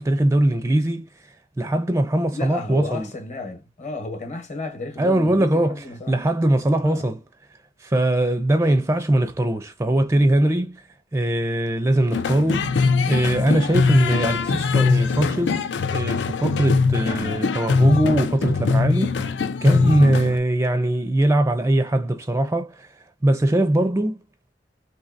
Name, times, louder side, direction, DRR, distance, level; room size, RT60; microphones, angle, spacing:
voice 1, 0.0-3.1 5.0-7.2 7.8-10.8 11.1-12.7 13.0-15.6 15.9-22.9 23.2-24.2, right 1 dB, 15° right, 0.4 m, -21 dB
voice 2, 2.3-6.3 6.8-7.1, left 2 dB, 40° left, 1.0 m, -33 dB
sound 1, 12.1-20.4, left 4 dB, 80° left, 0.4 m, -22 dB
3.9 x 2.7 x 2.5 m
head